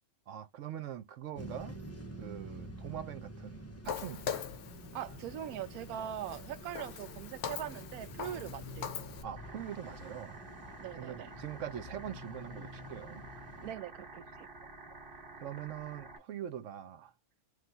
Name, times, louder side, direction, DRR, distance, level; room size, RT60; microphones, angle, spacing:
voice 1, 0.3-1.8 2.2-4.3 9.2-10.4 11.0-13.2 15.4-17.1, right 10 dB, 65° right, 0.9 m, -43 dB
sound 1, 1.3-13.7, equal, 20° left, 0.4 m, -48 dB
Walk footsteps, 3.8-9.2, left 8 dB, 60° left, 0.8 m, -42 dB
voice 2, 4.9-8.9 10.8-11.3 13.6-14.5, right 11 dB, 90° right, 1.1 m, -41 dB
sound 2, 9.4-16.2, right 3 dB, 40° right, 1.1 m, -50 dB
3.3 x 2.5 x 4.3 m
omnidirectional pair, 1.5 m